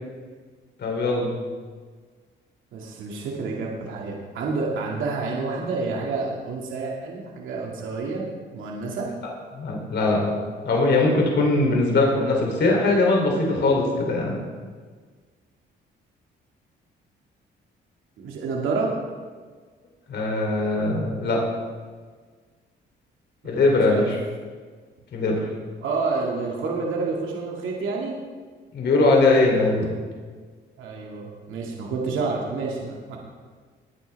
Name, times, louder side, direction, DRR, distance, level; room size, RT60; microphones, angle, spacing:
voice 1, 0.8-1.3 9.5-10.3 10.6-14.3 20.1-21.4 23.4-24.2 25.1-25.5 28.7-29.9, left 2 dB, 60° left, -1 dB, 3.1 m, -21 dB
voice 2, 2.7-9.1 18.2-18.9 23.6-24.1 25.8-28.2 30.8-33.2, right 4 dB, 85° right, -2 dB, 2.2 m, -29 dB
20.0 x 9.4 x 3.5 m, 1.5 s
cardioid pair, 90°, 20 cm